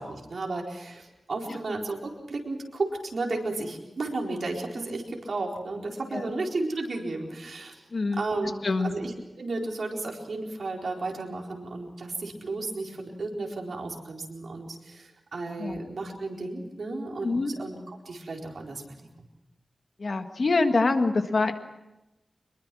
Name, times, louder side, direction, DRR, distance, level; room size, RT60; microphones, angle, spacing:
voice 1, 0.0-7.8 8.1-9.1 9.4-19.0, right 2 dB, 70° right, 0 dB, 4.2 m, -33 dB
voice 2, 17.2-17.5 20.0-21.5, left 3 dB, 55° left, 6 dB, 1.7 m, -25 dB
25.0 x 22.0 x 6.1 m, 0.98 s
wide cardioid pair, 115°, 0 cm